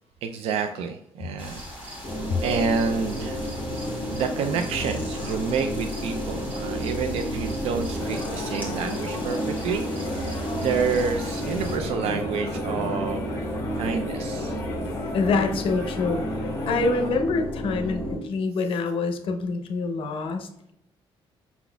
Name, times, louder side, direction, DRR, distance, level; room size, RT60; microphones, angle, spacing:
voice 1, 0.2-1.6 2.4-3.4 4.1-9.8 10.5-13.5 13.8-14.6, right 5 dB, 85° right, 6 dB, 0.4 m, -28 dB
sound 1, 1.4-11.8, equal, 15° right, 1.6 m, -40 dB
sound 2, 2.0-18.2, equal, 15° left, 0.9 m, -31 dB
sound 3, 8.0-17.1, left 2 dB, 30° left, 1.8 m, -36 dB
voice 2, 13.4-13.8 14.9-20.7, left 3 dB, 60° left, 6 dB, 0.7 m, -26 dB
5.7 x 4.0 x 2.2 m, 0.80 s
cardioid pair, 140°, 10 cm